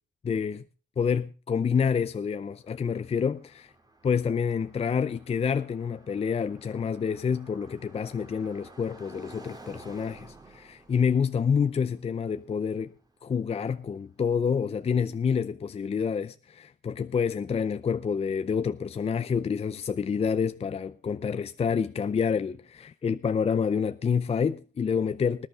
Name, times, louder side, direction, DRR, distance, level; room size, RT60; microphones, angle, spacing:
voice 1, 0.2-0.6 1.0-3.7 4.0-12.9 13.2-25.5, left 6 dB, 30° left, 0.5 m, -28 dB
Car passing by, 2.2-14.2, right 2 dB, 20° right, 2.2 m, -53 dB
20.0 x 10.5 x 3.6 m
cardioid pair, 90°, 20 cm